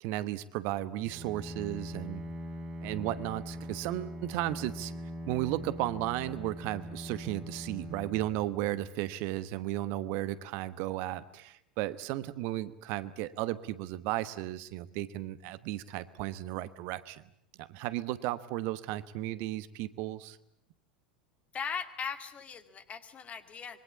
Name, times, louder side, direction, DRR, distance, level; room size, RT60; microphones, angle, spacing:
voice 1, 0.0-2.2 2.8-4.9 5.3-17.2 17.6-20.4, right 15 dB, 45° right, 15 dB, 1.1 m, -34 dB
Bowed string instrument, 1.1-9.0, equal, 20° right, 7.1 m, -42 dB
voice 2, 21.5-23.8, left 6 dB, 25° left, 10 dB, 2.3 m, -39 dB
25.5 x 23.0 x 8.4 m, 0.76 s
figure-of-eight pair, 80°, 5 cm